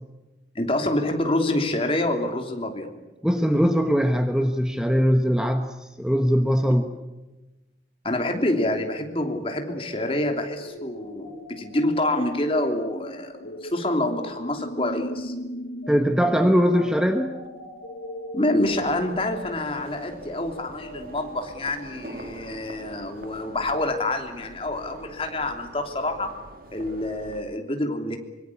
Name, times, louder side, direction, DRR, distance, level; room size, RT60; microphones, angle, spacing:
voice 1, 0.5-3.0 8.0-15.3 18.3-26.3 26.7-28.2, left 1 dB, 30° left, 4 dB, 3.1 m, -27 dB
voice 2, 3.2-6.9 15.9-17.3, equal, 5° right, 5 dB, 1.2 m, -21 dB
sound 1, 9.6-21.4, equal, 80° left, 5.7 m, -39 dB
sound 2, 18.6-27.4, right 1 dB, 55° right, 2.6 m, -44 dB
25.0 x 23.5 x 8.6 m, 1.1 s
head